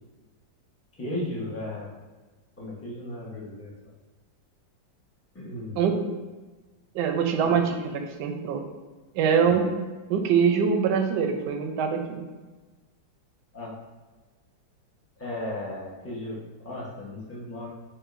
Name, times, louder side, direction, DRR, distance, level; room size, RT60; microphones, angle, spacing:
voice 1, 1.0-1.9 2.6-3.7 5.3-5.8 7.4-7.6 9.4-9.5 13.5-13.7 15.2-17.7, left 1 dB, 20° left, -6 dB, 0.4 m, -35 dB
voice 2, 6.9-8.6 9.1-9.7 10.1-12.2, right 6 dB, 75° right, 4 dB, 1.1 m, -24 dB
6.0 x 2.6 x 2.5 m, 1.2 s
omnidirectional pair, 2.0 m